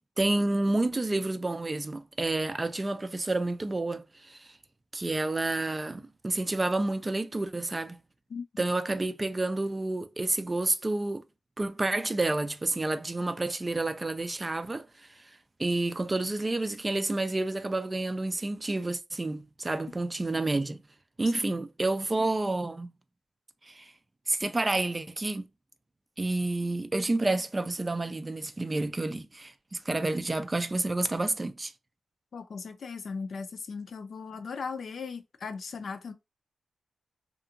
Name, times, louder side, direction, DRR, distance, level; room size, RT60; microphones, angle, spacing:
voice 1, 0.2-4.5 4.9-8.0 8.6-11.2 11.6-14.9 15.6-20.8 21.2-22.9 23.7-23.9 24.3-25.4 26.2-31.7, right 2 dB, 25° right, 0.3 m, -29 dB
voice 2, 32.3-36.1, left 5 dB, 65° left, 0.4 m, -38 dB
2.7 x 2.5 x 2.5 m
cardioid pair, 75°, 0 cm